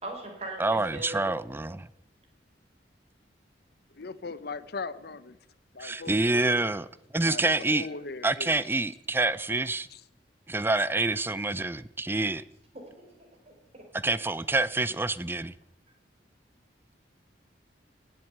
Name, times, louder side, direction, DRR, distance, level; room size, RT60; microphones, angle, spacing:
voice 1, 0.0-1.3 12.7-13.8, right 2 dB, 35° right, 4.4 m, -41 dB
voice 2, 0.6-1.9 5.8-6.9 7.1-7.9 8.2-9.9 10.5-12.4 14.0-15.5, right 2 dB, 10° right, 0.5 m, -27 dB
voice 3, 4.0-5.4 5.7-6.8 7.2-8.6 9.9-10.0, left 4 dB, 60° left, 0.9 m, -39 dB
18.0 x 7.7 x 8.7 m
head